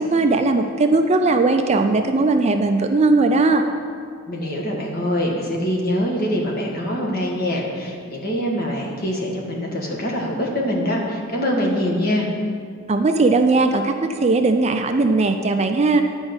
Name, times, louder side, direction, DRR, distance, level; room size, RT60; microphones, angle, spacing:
voice 1, 0.0-3.6 12.9-16.0, right 3 dB, 30° right, 6 dB, 0.4 m, -18 dB
voice 2, 4.3-12.3, equal, 45° left, -1 dB, 1.7 m, -24 dB
10.5 x 5.3 x 7.9 m, 2.1 s
head